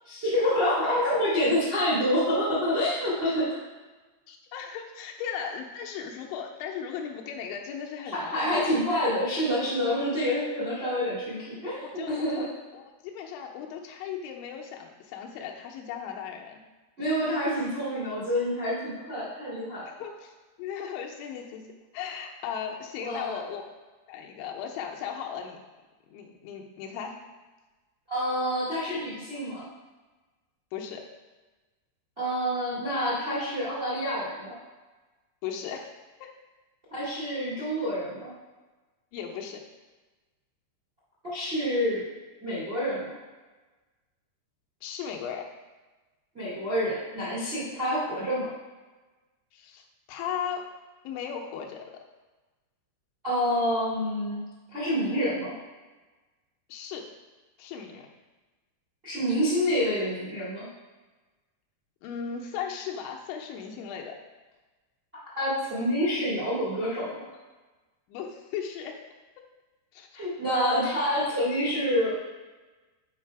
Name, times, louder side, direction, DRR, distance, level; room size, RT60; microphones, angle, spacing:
voice 1, 0.1-3.5 8.0-12.5 17.0-19.9 23.0-23.4 28.1-29.7 32.2-34.5 36.9-38.3 41.2-42.0 42.4-43.1 46.3-48.5 53.2-54.4 54.7-55.5 59.0-60.7 65.3-67.2 70.1-72.2, equal, 75° right, -7 dB, 0.5 m, -27 dB
voice 2, 4.3-8.7 11.8-12.5 12.7-16.6 20.0-20.3 20.6-21.7 21.9-23.6 24.1-25.6 26.1-27.2 30.7-31.0 35.4-35.9 36.2-36.3 39.1-39.6 44.8-45.5 49.5-50.7 51.0-51.8 56.7-57.1 57.6-58.1 62.0-64.2 68.1-69.0 69.9-70.1, left 7 dB, 85° left, 1 dB, 3.1 m, -37 dB
7.5 x 4.9 x 4.7 m, 1.2 s
omnidirectional pair, 5.3 m